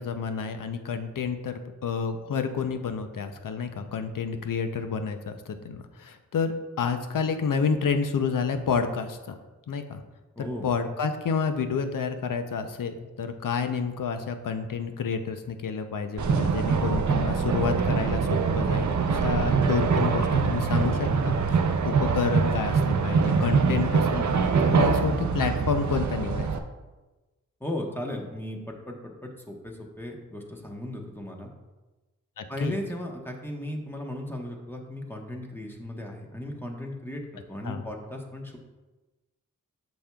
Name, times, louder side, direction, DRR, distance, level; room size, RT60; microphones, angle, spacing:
voice 1, 0.0-9.3 9.7-10.0 10.4-26.5 32.4-32.8 37.6-37.8, left 5 dB, 80° left, 8 dB, 0.6 m, -29 dB
voice 2, 10.3-10.7 27.6-31.5 32.5-38.6, left 1 dB, 5° left, 0 dB, 1.1 m, -36 dB
sound 1, 16.2-26.6, right 5 dB, 60° right, 0.6 m, -24 dB
8.6 x 6.1 x 2.3 m, 1.2 s
wide cardioid pair, 70°, 32 cm